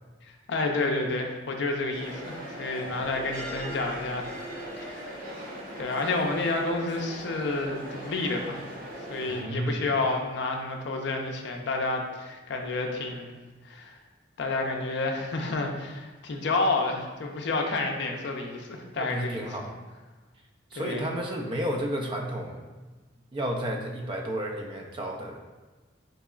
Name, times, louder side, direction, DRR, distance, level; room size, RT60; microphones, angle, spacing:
voice 1, 0.2-4.3 4.8-5.2 5.8-8.6 9.1-13.3 13.6-14.0 14.4-19.5 20.8-21.1, left 3 dB, 60° left, 2 dB, 0.4 m, -30 dB
sound 1, 1.9-9.4, right 1 dB, 45° right, 0.8 m, -39 dB
voice 2, 9.3-9.8 18.9-19.8 20.7-22.7 23.3-25.4, right 1 dB, 25° right, 1 dB, 0.3 m, -32 dB
3.9 x 2.9 x 2.3 m, 1.2 s
head